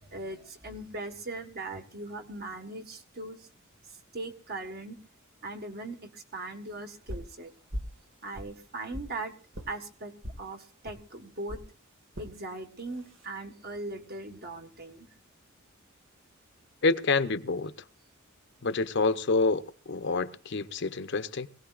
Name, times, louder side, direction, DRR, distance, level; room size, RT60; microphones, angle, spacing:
voice 1, 0.0-3.5 3.9-5.0 5.4-7.5 8.2-9.3 9.7-11.6 12.2-15.1, right 2 dB, 50° right, 1.6 m, -39 dB
sound 1, 7.1-7.4 7.7-8.0 8.3-9.1 9.5-9.7 10.2-10.4 10.9-11.0 11.5-11.7 12.1-12.3 12.9-13.3, equal, 80° right, 2.1 m, -39 dB
voice 2, 16.8-17.7 18.6-21.5, left 3 dB, 60° left, 0.8 m, -27 dB
22.5 x 17.0 x 2.5 m
head